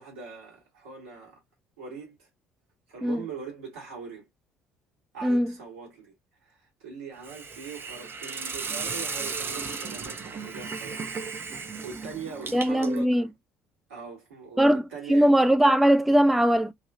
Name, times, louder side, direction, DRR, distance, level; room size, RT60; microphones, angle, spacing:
voice 1, 0.0-1.4 1.8-2.3 2.9-4.3 5.1-6.1 6.4-11.2 11.4-13.3 13.9-15.3, right 5 dB, 75° right, 1.5 m, -41 dB
voice 2, 5.2-5.5 12.5-13.3 14.6-14.8 15.1-16.7, equal, ahead, 0.3 m, -20 dB
Hiss, 7.2-13.0, right 5 dB, 30° right, 0.7 m, -35 dB
3.3 x 2.4 x 2.4 m
figure-of-eight pair, 55°, 7 cm